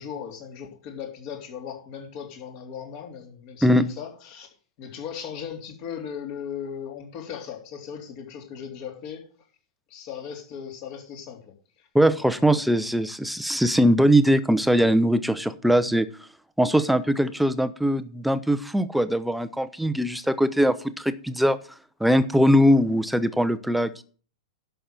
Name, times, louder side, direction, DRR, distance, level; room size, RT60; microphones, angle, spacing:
voice 1, 0.0-4.5 4.8-9.2 9.9-11.4 11.8-11.9 12.2-12.6, left 8 dB, 45° left, 3 dB, 3.4 m, -37 dB
voice 2, 3.6-3.9 11.9-16.1 16.6-21.6 22.0-24.0, equal, ahead, 12 dB, 0.8 m, -21 dB
11.5 x 6.8 x 6.0 m, 0.40 s
figure-of-eight pair, 100°, 3 cm